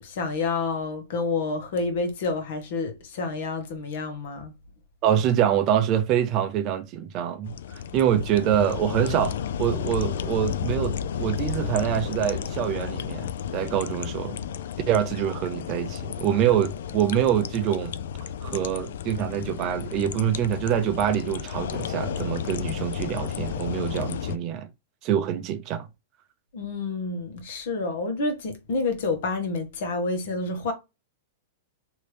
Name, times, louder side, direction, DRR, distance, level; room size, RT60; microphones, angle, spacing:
voice 1, 0.0-4.5 26.5-30.7, left 3 dB, 60° left, 1.1 m, -29 dB
voice 2, 5.0-14.4 14.9-17.9 18.4-24.7 25.0-25.9, right 10 dB, 30° right, 0.5 m, -25 dB
sound 1, 7.4-24.4, left 8 dB, 75° left, 0.3 m, -32 dB
3.1 x 2.7 x 3.3 m
supercardioid pair, 160°, 0 cm